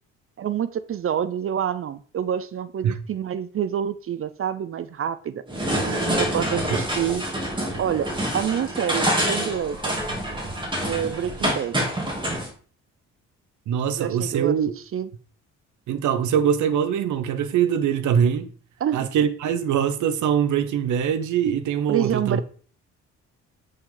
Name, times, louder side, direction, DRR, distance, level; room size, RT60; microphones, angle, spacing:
voice 1, 0.4-5.4 6.2-7.2 7.8-9.9 10.9-11.8 14.0-14.6 14.9-15.1 18.8-19.1 21.9-22.4, right 9 dB, 45° right, 0.6 m, -27 dB
sound 1, 5.5-12.5, right 1 dB, 15° right, 3.0 m, -26 dB
voice 2, 13.7-14.7 15.9-18.5 18.9-22.4, right 8 dB, 75° right, 1.0 m, -23 dB
8.7 x 5.4 x 3.9 m
cardioid pair, 90°, 30 cm